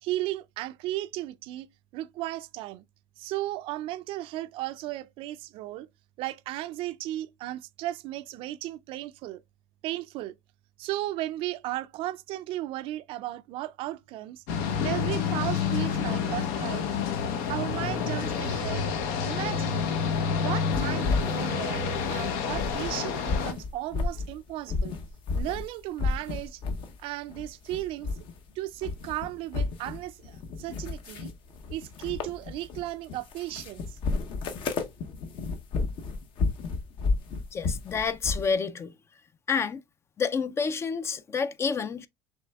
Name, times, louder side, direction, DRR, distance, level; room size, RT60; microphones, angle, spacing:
voice 1, 0.0-1.7 1.9-2.8 3.2-5.9 6.2-9.4 9.8-10.4 10.8-14.4 14.8-16.9 17.5-18.9 19.2-20.0 20.3-25.0 25.3-26.6 27.0-28.1 28.6-31.3 31.7-34.0, right 15 dB, 60° right, 0.4 m, -35 dB
sound 1, 14.5-23.5, left 6 dB, 85° left, 0.8 m, -29 dB
sound 2, 20.7-22.9 23.2-25.7 26.0-27.0 27.3-28.5 28.7-38.5, left 3 dB, 55° left, 0.8 m, -32 dB
voice 2, 37.5-38.9 39.5-39.8 40.2-42.1, left 5 dB, 25° left, 0.3 m, -29 dB
6.2 x 3.3 x 2.3 m
cardioid pair, 130°, 10 cm